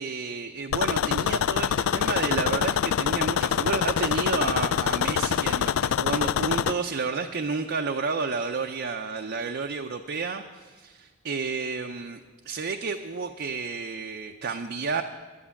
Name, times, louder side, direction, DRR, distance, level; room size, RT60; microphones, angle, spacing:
voice 1, 0.0-12.2 12.5-15.0, right 4 dB, 50° right, 4 dB, 0.5 m, -31 dB
sound 1, 0.7-6.7, left 8 dB, 65° left, 0.3 m, -25 dB
11.0 x 9.8 x 7.1 m, 1.4 s
head